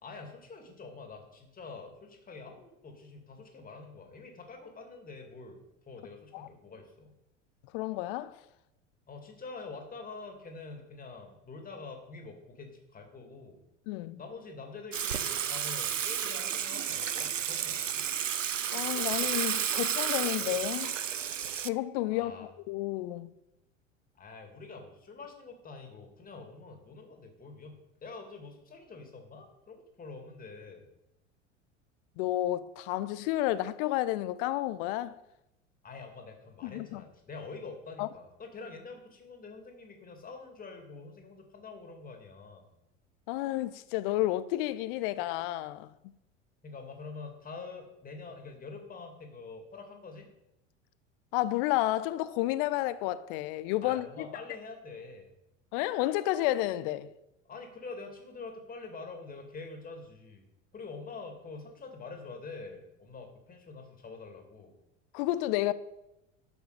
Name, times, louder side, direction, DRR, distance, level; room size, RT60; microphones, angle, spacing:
voice 1, 0.0-7.1 9.1-13.6 14.2-18.1 22.1-22.5 24.2-30.9 35.8-42.7 46.6-50.3 53.8-55.3 57.5-60.5 60.7-64.7, left 4 dB, 25° left, 2.5 m, -46 dB
voice 2, 7.7-8.4 13.9-14.2 18.7-20.9 21.6-23.3 32.2-35.2 36.6-37.0 38.0-38.1 43.3-46.1 51.3-54.3 55.7-57.1 65.1-65.7, left 15 dB, 45° left, 0.6 m, -31 dB
Water / Water tap faucet / Sink (filling or washing), 14.9-21.7, right 8 dB, 90° right, 0.5 m, -32 dB
12.0 x 6.9 x 5.1 m
figure-of-eight pair, 75°, 37 cm